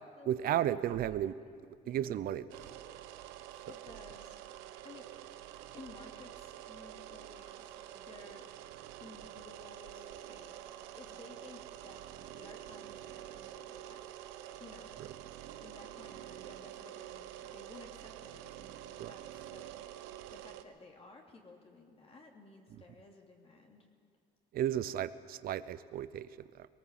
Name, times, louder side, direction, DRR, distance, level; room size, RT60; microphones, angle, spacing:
voice 1, 0.3-1.4 1.9-2.7 19.0-19.1 24.5-26.7, right 11 dB, 60° right, 14 dB, 0.7 m, -34 dB
voice 2, 1.8-2.2 3.7-5.1 5.7-8.5 9.0-10.6 10.9-15.0 15.6-23.9, left 3 dB, 35° left, 0 dB, 2.9 m, -56 dB
sound 1, 2.5-20.6, right 12 dB, 90° right, 1.0 m, -48 dB
20.5 x 19.0 x 7.6 m, 2.1 s
cardioid pair, 100°, 18 cm